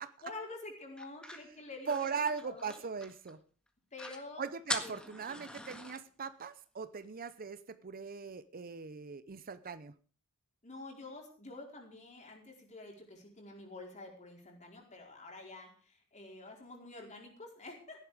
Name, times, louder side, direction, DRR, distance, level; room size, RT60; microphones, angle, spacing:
voice 1, 0.0-2.8 3.9-4.4 4.8-5.0 5.3-5.4 10.6-18.0, left 2 dB, 35° left, 4.6 m, -48 dB
sound 1, 1.0-3.4 3.7-3.8 4.0-4.2 4.7-6.0, left 1 dB, 5° left, 1.6 m, -42 dB
voice 2, 1.9-3.4 4.4-9.9, right 5 dB, 40° right, 0.7 m, -39 dB
15.5 x 11.0 x 5.0 m
head